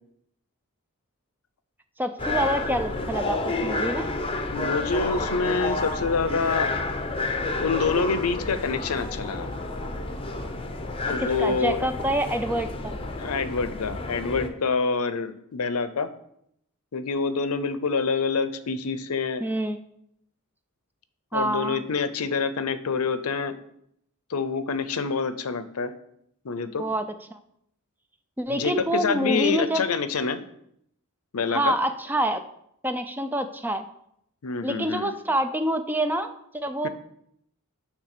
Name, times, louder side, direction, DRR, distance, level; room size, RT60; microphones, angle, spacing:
voice 1, 2.0-4.1 11.2-13.0 19.4-19.8 21.3-21.8 26.8-27.0 27.3-27.4 28.4-29.8 31.5-32.4 32.8-33.9 34.6-36.9, right 1 dB, 10° right, 8 dB, 0.5 m, -27 dB
sound 1, 2.2-14.5, left 2 dB, 25° left, 0.7 m, -30 dB
voice 2, 4.5-6.7 7.6-9.5 11.0-11.9 13.2-16.1 16.9-19.4 21.3-23.6 24.3-25.9 26.4-26.8 28.5-30.4 31.3-31.8 34.4-35.1 36.8-36.9, left 4 dB, 85° left, 12 dB, 0.6 m, -27 dB
9.6 x 3.4 x 6.7 m, 0.74 s
head